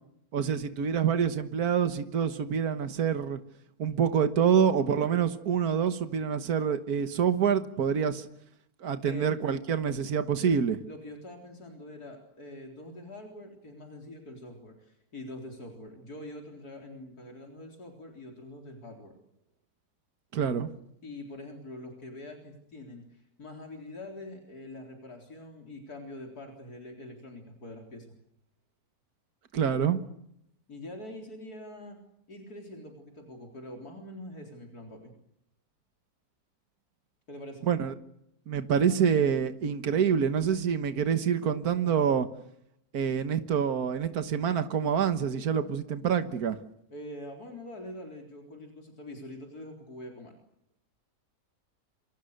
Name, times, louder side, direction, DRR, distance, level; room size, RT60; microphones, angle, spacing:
voice 1, 0.3-3.4 3.8-8.3 8.8-10.8 20.3-20.7 29.5-30.0 37.6-37.9 38.5-42.3 42.9-46.6, right 7 dB, 80° right, 10 dB, 1.8 m, -26 dB
voice 2, 10.9-19.2 21.0-28.2 30.7-32.0 32.3-35.1 37.3-37.7 46.9-50.3, left 1 dB, 80° left, 2 dB, 4.4 m, -44 dB
28.0 x 26.5 x 6.7 m, 0.75 s
omnidirectional pair, 1.6 m